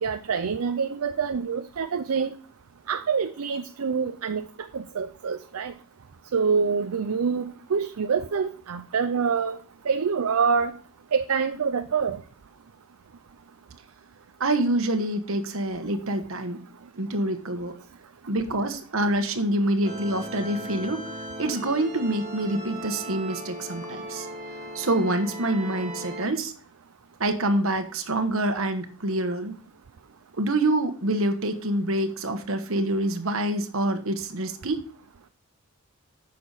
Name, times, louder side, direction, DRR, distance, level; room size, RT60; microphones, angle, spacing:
voice 1, 0.0-2.3 2.9-4.5 4.7-5.7 6.3-9.6 9.8-10.7 11.1-12.2, right 5 dB, 85° right, 9 dB, 0.5 m, -26 dB
voice 2, 14.4-16.6 17.0-17.7 18.3-21.0 21.4-24.3 24.7-26.5 27.2-29.5 30.4-34.8, right 1 dB, 65° right, 8 dB, 1.3 m, -26 dB
sound 1, 19.8-26.3, equal, 35° right, 2.3 m, -37 dB
9.4 x 6.7 x 4.0 m, 0.44 s
head